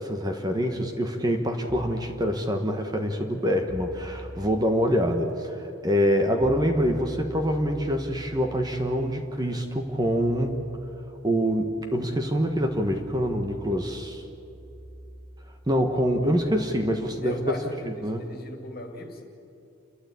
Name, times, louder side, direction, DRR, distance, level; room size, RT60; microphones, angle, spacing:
voice 1, 0.0-10.7 11.2-14.2 15.7-17.6 17.8-18.2, equal, 20° right, 4 dB, 1.4 m, -25 dB
sound 1, 1.7-2.1 3.7-4.6 6.4-17.8, equal, 65° right, 4.0 m, -45 dB
voice 2, 17.2-19.2, left 1 dB, 45° left, 4 dB, 2.5 m, -38 dB
29.5 x 13.0 x 8.6 m, 2.9 s
head